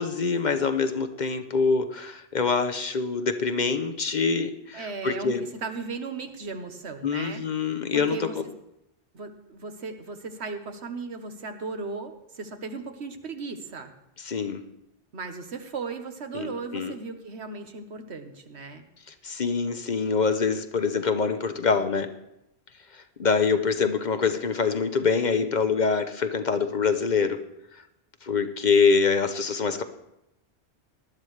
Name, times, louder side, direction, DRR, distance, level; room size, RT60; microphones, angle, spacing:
voice 1, 0.0-5.4 7.0-8.4 14.2-14.6 16.3-16.9 19.2-22.1 22.9-27.4 28.2-29.8, left 5 dB, 45° left, 9 dB, 0.8 m, -25 dB
voice 2, 4.7-8.5 9.1-13.9 15.1-18.8, right 4 dB, 85° right, 6 dB, 1.5 m, -36 dB
19.5 x 12.0 x 3.3 m, 0.86 s
omnidirectional pair, 1.1 m